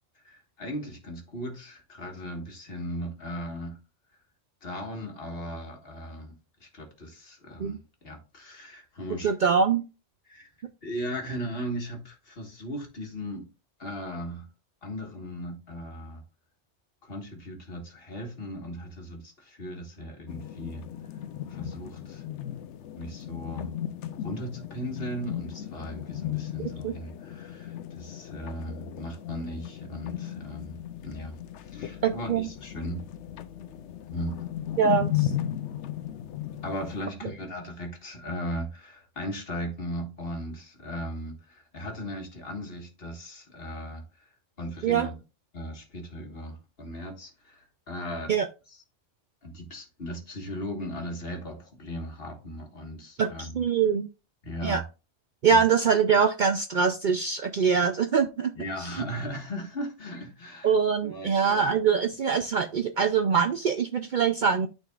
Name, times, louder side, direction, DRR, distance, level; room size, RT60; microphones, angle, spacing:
voice 1, 0.2-3.8 4.6-6.3 6.6-9.3 10.3-10.5 10.8-13.5 13.8-14.5 14.8-16.2 17.0-20.8 21.5-22.2 23.0-23.7 24.2-31.4 31.6-33.0 34.1-34.4 36.6-44.3 44.6-45.1 45.5-48.3 48.7-48.8 49.4-53.6 54.4-54.8 55.5-55.6 58.6-60.7 61.0-61.9, equal, 55° left, 1.8 m, -37 dB
voice 2, 9.2-9.8 26.6-26.9 32.0-32.5 34.8-35.3 44.8-45.1 48.3-48.5 53.2-54.1 54.6-54.8 55.4-58.5 58.8-58.9 60.6-64.7, right 6 dB, 60° right, 0.5 m, -24 dB
sound 1, 20.3-37.0, left 11 dB, 75° left, 0.9 m, -36 dB
12.0 x 4.1 x 2.4 m
omnidirectional pair, 1.2 m